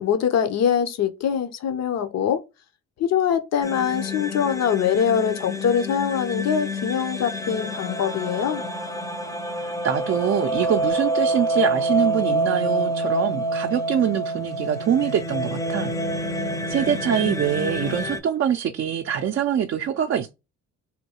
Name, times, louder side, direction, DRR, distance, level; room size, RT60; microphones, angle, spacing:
voice 1, 0.0-2.4 3.0-8.6, left 8 dB, 60° left, 0.7 m, -23 dB
sound 1, 3.6-18.2, right 1 dB, 10° left, 0.6 m, -27 dB
voice 2, 9.6-20.3, right 9 dB, 45° right, 0.4 m, -24 dB
3.6 x 2.3 x 2.8 m
cardioid pair, 90°, 30 cm